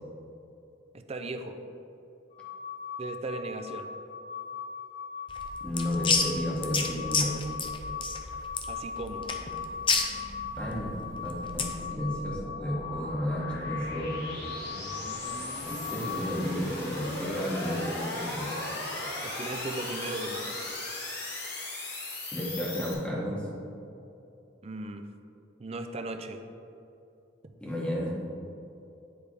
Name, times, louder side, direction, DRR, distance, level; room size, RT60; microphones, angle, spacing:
voice 1, 0.9-1.6 3.0-3.9 8.7-9.3 19.2-20.6 24.6-25.0 25.6-26.4, right 2 dB, 35° right, 7 dB, 0.4 m, -37 dB
sound 1, 2.3-16.3, left 6 dB, 85° left, 1.4 m, -39 dB
sound 2, 5.3-11.8, left 5 dB, 30° left, 0.5 m, -30 dB
voice 2, 5.6-7.4 10.6-10.9 11.2-14.2 15.6-18.5 22.3-23.5 27.6-28.1, equal, 5° left, -6 dB, 1.5 m, -32 dB
sound 3, 9.1-22.9, left 2 dB, 60° left, 1.7 m, -38 dB
9.8 x 3.4 x 4.8 m, 2.7 s
head